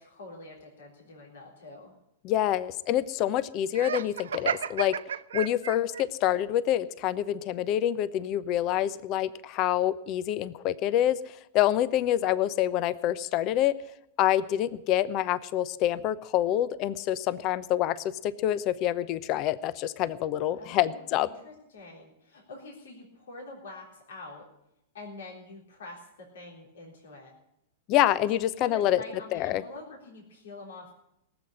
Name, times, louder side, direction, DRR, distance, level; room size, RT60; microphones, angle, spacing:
voice 1, 0.0-2.0 20.5-24.5 24.9-27.3 28.3-30.9, left 2 dB, 75° left, 0 dB, 3.7 m, -46 dB
voice 2, 2.2-4.9 5.3-11.2 11.5-13.7 14.2-21.3 27.9-29.0 29.3-29.6, left 12 dB, 45° left, 16 dB, 0.8 m, -26 dB
Laughter, 3.7-6.0, right 8 dB, 80° right, 0.6 m, -32 dB
18.5 x 7.9 x 9.9 m, 0.81 s
hypercardioid pair, 110°, 0 cm